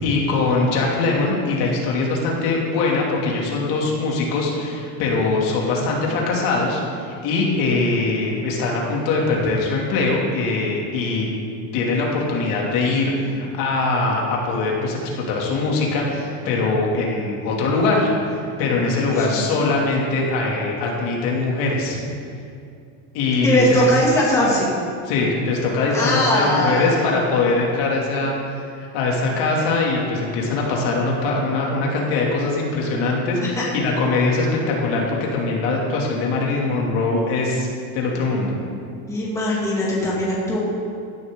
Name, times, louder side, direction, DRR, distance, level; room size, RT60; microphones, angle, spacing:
voice 1, 0.0-11.3 11.7-22.0 23.1-23.9 25.1-28.3 28.8-37.7 37.9-38.5, left 3 dB, 60° left, -2 dB, 2.6 m, -22 dB
voice 2, 23.4-24.7 25.9-27.2 33.6-33.7 39.1-40.6, equal, 10° left, -6 dB, 2.3 m, -20 dB
16.5 x 11.0 x 3.8 m, 2.4 s
cardioid pair, 165°, 37 cm